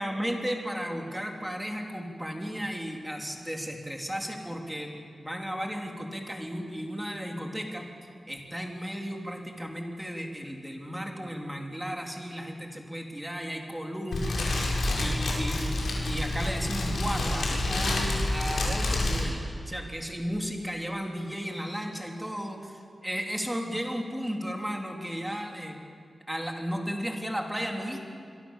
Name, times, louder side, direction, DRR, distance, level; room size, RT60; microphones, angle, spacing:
voice 1, 0.0-7.9 8.3-14.5 15.0-15.8 16.0-25.8 26.3-28.1, equal, 5° right, 1 dB, 3.7 m, -34 dB
Fire, 14.1-19.2, left 1 dB, 85° left, 6.4 m, -28 dB
26.5 x 23.5 x 7.5 m, 2.3 s
wide cardioid pair, 100°, 0 cm